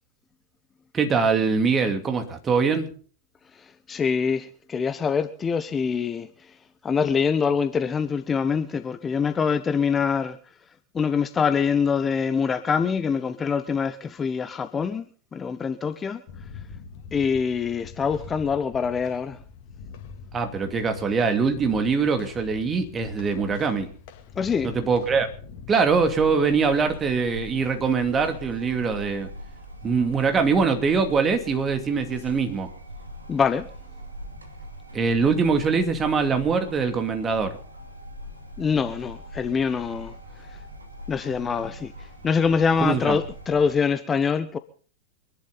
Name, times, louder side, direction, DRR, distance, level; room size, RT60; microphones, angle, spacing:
voice 1, 0.9-2.9 20.3-23.9 24.6-25.3 25.7-29.3 29.8-32.7 34.9-37.6 42.8-43.2, right 5 dB, 20° right, 2.5 m, -23 dB
voice 2, 3.5-6.5 6.8-10.4 10.9-15.1 15.3-16.2 17.1-19.4 24.4-24.7 33.3-33.7 38.6-40.1 41.1-44.6, left 6 dB, 20° left, 0.9 m, -24 dB
sound 1, 16.3-25.7, left 5 dB, 45° left, 2.4 m, -43 dB
sound 2, 25.8-43.7, equal, 80° right, 2.5 m, -41 dB
25.5 x 11.5 x 4.0 m
figure-of-eight pair, 90°, 0 cm